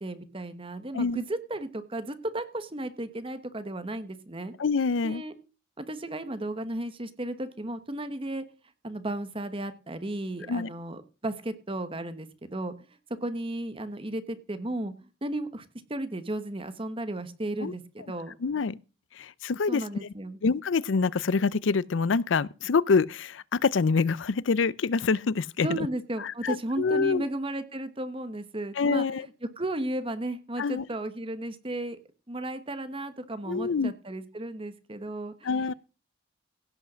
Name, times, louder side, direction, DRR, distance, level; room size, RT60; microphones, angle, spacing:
voice 1, 0.0-4.5 5.0-5.3 5.8-8.5 8.8-12.7 13.2-14.9 15.2-15.6 15.9-18.3 19.7-20.4 25.6-29.3 29.6-32.0 32.3-35.5, right 1 dB, 30° right, 1.2 m, -34 dB
voice 2, 4.6-5.2 10.5-10.7 17.6-17.7 18.4-18.8 19.2-20.1 20.4-25.9 26.2-27.3 28.8-29.3 30.6-30.8 33.5-33.9 35.4-35.7, left 4 dB, 75° left, 0.5 m, -26 dB
17.0 x 5.7 x 6.2 m
head